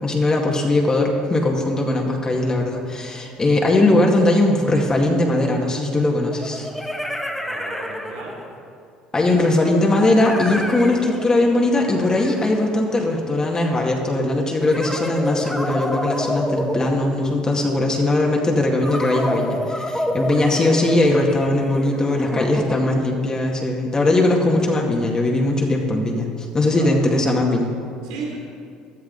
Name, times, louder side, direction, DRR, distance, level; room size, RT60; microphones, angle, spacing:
voice 1, 0.0-6.7 9.1-27.7, left 2 dB, 25° left, 0 dB, 2.1 m, -20 dB
sound 1, 4.8-4.9 6.3-8.7 9.9-13.4 14.6-17.6 18.8-23.1, left 1 dB, 5° left, 1.2 m, -29 dB
voice 2, 7.3-8.3 26.7-26.9 28.0-28.4, right 4 dB, 85° right, -2 dB, 3.0 m, -34 dB
15.0 x 12.5 x 4.1 m, 2.3 s
hypercardioid pair, 75°, 3 cm